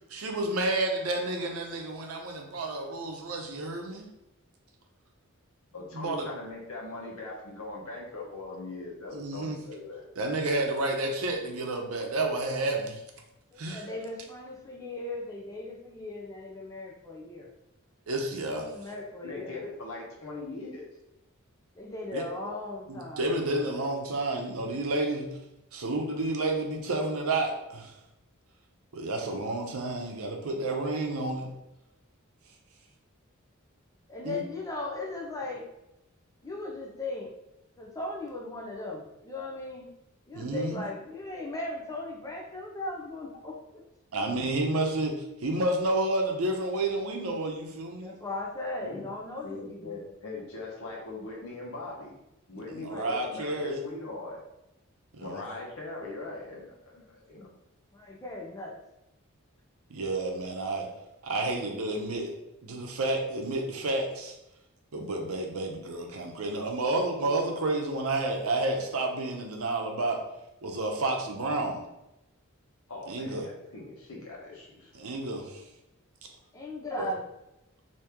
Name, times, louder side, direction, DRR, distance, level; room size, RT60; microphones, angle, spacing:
voice 1, 0.1-4.1 5.9-6.3 9.1-9.6 10.2-13.0 13.6-13.8 18.1-18.7 22.1-22.2 22.9-25.4 25.7-27.9 28.9-31.5 34.2-34.4 40.3-40.8 44.1-48.2 52.7-53.8 55.1-55.4 59.9-60.9 61.2-62.3 62.6-64.3 64.9-70.2 70.6-71.8 73.1-73.5 74.9-75.6 77.0-77.1, right 2 dB, 85° right, 3 dB, 0.7 m, -30 dB
voice 2, 5.7-10.1 19.2-20.9 43.3-43.4 48.8-49.1 49.4-52.2 52.5-54.4 55.2-57.5 72.9-74.9, left 2 dB, 75° left, -3 dB, 1.0 m, -40 dB
voice 3, 13.5-17.5 18.5-19.6 21.8-23.2 34.1-35.6 36.4-37.3 37.8-39.9 40.3-43.8 48.0-50.0 52.8-53.1 57.9-58.8 76.5-77.2, left 2 dB, 15° left, -1 dB, 0.5 m, -37 dB
2.9 x 2.7 x 3.5 m, 0.90 s
head